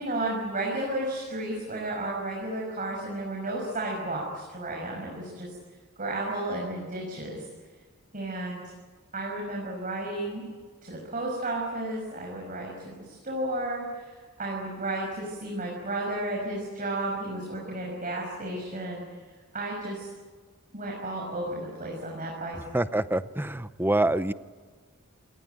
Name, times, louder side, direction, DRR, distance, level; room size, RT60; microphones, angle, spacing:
voice 1, 0.0-5.5 6.0-7.4 8.1-8.6 9.1-10.5 10.8-19.0 19.5-20.1 20.7-22.6, right 1 dB, 40° right, -2 dB, 6.2 m, -33 dB
voice 2, 22.7-24.3, right 1 dB, 10° right, 13 dB, 0.7 m, -26 dB
28.5 x 20.0 x 9.3 m, 1.5 s
head